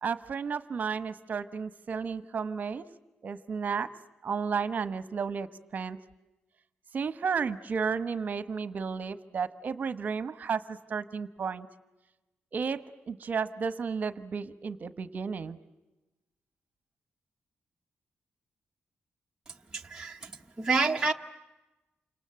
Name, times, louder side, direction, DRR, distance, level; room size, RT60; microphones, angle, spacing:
voice 1, 0.0-2.8 3.2-3.9 4.2-6.0 6.9-11.7 12.5-12.8 13.1-15.6, right 5 dB, 45° right, 13 dB, 1.1 m, -33 dB
voice 2, 19.7-20.3 20.6-21.1, right 4 dB, 15° right, 1 dB, 0.9 m, -28 dB
29.0 x 26.5 x 7.7 m, 1.0 s
wide cardioid pair, 170°, 4 cm